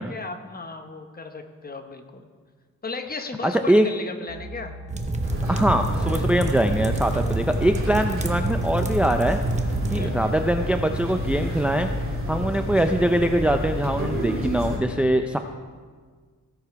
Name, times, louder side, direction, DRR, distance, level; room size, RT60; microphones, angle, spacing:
voice 1, 0.0-2.3 2.8-4.7 9.8-10.4, left 4 dB, 30° left, 6 dB, 1.0 m, -36 dB
voice 2, 3.4-3.9 5.5-9.4 9.9-11.9 12.3-15.4, right 1 dB, 5° right, 6 dB, 0.4 m, -22 dB
sound 1, 4.3-11.8, left 2 dB, 70° right, 3.5 m, -41 dB
sound 2, 4.9-10.1, right 2 dB, 20° right, 0.9 m, -28 dB
sound 3, 5.2-14.8, equal, 40° right, 2.9 m, -29 dB
16.5 x 7.0 x 4.7 m, 1.5 s
wide cardioid pair, 110°, 31 cm